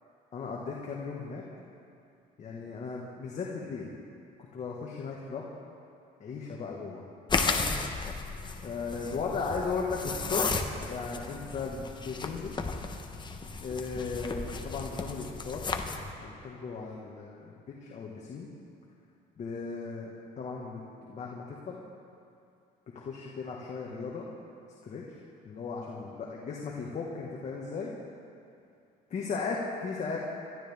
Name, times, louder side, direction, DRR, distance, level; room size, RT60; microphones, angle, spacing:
voice 1, 0.3-1.4 2.4-3.9 4.5-5.4 6.2-7.0 8.6-12.5 13.6-15.6 16.2-17.5 17.9-18.5 19.4-20.1 20.4-21.8 22.9-24.3 24.8-25.0 25.4-27.9 29.1-30.2, left 4 dB, 45° left, -3 dB, 1.8 m, -36 dB
sound 1, 7.3-16.1, left 4 dB, 25° left, 1.1 m, -34 dB
25.0 x 12.5 x 3.6 m, 2.5 s
cardioid pair, 110°, 17 cm